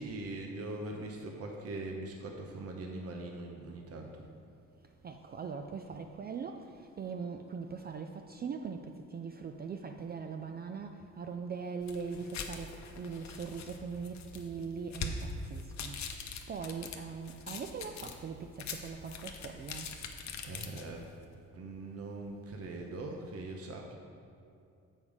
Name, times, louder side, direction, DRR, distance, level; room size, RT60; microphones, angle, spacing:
voice 1, 0.0-4.3 20.4-21.1 21.5-23.9, right 2 dB, 50° right, 2 dB, 0.8 m, -41 dB
voice 2, 5.0-6.7 7.0-12.7 13.0-16.0 16.5-19.9, right 5 dB, 35° right, 5 dB, 0.4 m, -41 dB
sound 1, 11.8-21.1, left 4 dB, 65° left, 0.8 m, -43 dB
7.0 x 5.4 x 4.8 m, 2.5 s
cardioid pair, 90°, 30 cm